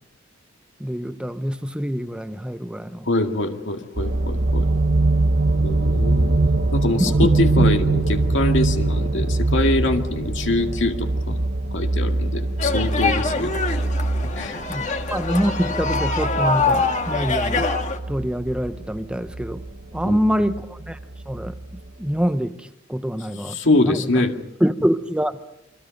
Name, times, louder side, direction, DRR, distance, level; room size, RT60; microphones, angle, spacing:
voice 1, 0.8-3.1 7.1-7.3 7.6-7.7 14.7-14.8 15.1-17.6 18.1-19.6 19.9-21.0 21.3-21.5 22.0-23.6 23.8-24.3 24.6-25.3, equal, 5° right, 10 dB, 0.8 m, -25 dB
voice 2, 3.1-4.7 5.6-6.4 6.7-11.4 11.7-13.8 14.2-14.6 20.0-20.2 23.4-24.4, left 2 dB, 65° left, 4 dB, 2.1 m, -24 dB
sound 1, 4.0-21.8 22.2-22.3, right 2 dB, 55° right, 1.1 m, -23 dB
sound 2, 12.6-18.0, left 4 dB, 40° left, 1.5 m, -24 dB
28.5 x 23.0 x 5.3 m, 0.86 s
head